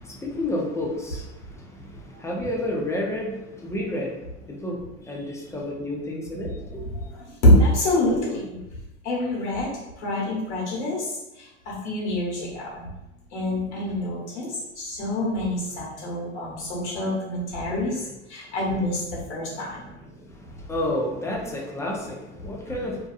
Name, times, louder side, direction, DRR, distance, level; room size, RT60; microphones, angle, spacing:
voice 1, 0.0-6.9 17.7-18.0 18.4-18.6 19.5-23.1, left 1 dB, 10° left, -2 dB, 0.5 m, -31 dB
voice 2, 7.4-8.5 9.0-9.7 10.0-11.0 11.7-12.9 13.3-14.5 14.8-18.0 18.3-19.9, left 1 dB, 70° left, -5 dB, 1.2 m, -25 dB
2.6 x 2.3 x 2.3 m, 0.95 s
hypercardioid pair, 85°, 36 cm